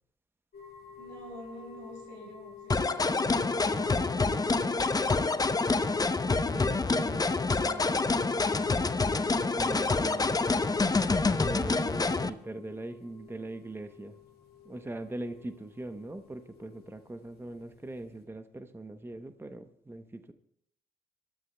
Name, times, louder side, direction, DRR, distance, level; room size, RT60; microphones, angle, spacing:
sound 1, 0.5-18.2, left 9 dB, 65° left, 2.0 m, -52 dB
voice 1, 1.0-5.0 11.5-12.4, right 1 dB, 85° right, -1 dB, 5.9 m, -49 dB
sound 2, 2.7-12.3, left 3 dB, 20° left, 0.8 m, -27 dB
voice 2, 6.2-7.4 7.6-8.2 9.6-10.4 11.4-14.2 14.6-20.3, right 2 dB, 15° right, 9 dB, 0.9 m, -41 dB
27.0 x 13.5 x 2.3 m, 0.71 s
hypercardioid pair, 50°, 17 cm